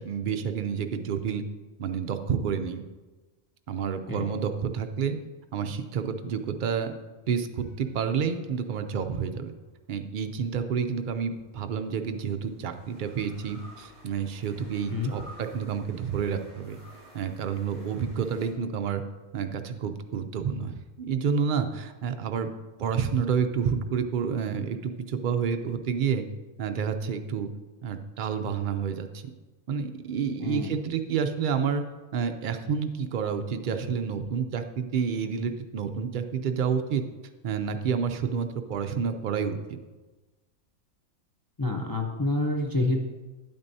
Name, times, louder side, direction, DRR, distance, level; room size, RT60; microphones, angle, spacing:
voice 1, 0.0-1.4 1.8-2.9 3.7-5.2 5.5-6.9 7.3-9.5 9.9-16.8 17.1-19.0 19.3-22.5 22.8-26.2 26.6-27.5 27.8-29.2 29.7-31.8 32.1-37.0 37.4-39.6, right 6 dB, 75° right, 7 dB, 0.4 m, -29 dB
sound 1, 7.6-9.1 11.0-18.5, equal, 55° left, 3.4 m, -53 dB
voice 2, 30.4-30.7 41.6-43.1, left 2 dB, 35° left, 0 dB, 0.3 m, -27 dB
8.8 x 8.7 x 2.7 m, 1.2 s
omnidirectional pair, 1.4 m